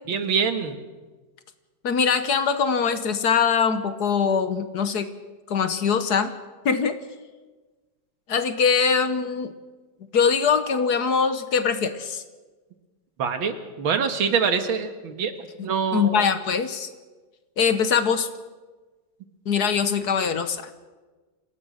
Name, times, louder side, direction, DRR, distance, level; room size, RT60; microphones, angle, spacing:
voice 1, 0.1-0.8 13.2-15.3 15.6-16.2, right 6 dB, 90° right, 8 dB, 2.4 m, -25 dB
voice 2, 1.8-5.1 5.5-6.3 6.6-7.0 8.3-9.5 10.1-12.2 15.9-16.9 17.6-18.3 19.5-20.7, left 6 dB, 60° left, 10 dB, 1.5 m, -22 dB
26.5 x 17.0 x 6.4 m, 1.3 s
omnidirectional pair, 2.1 m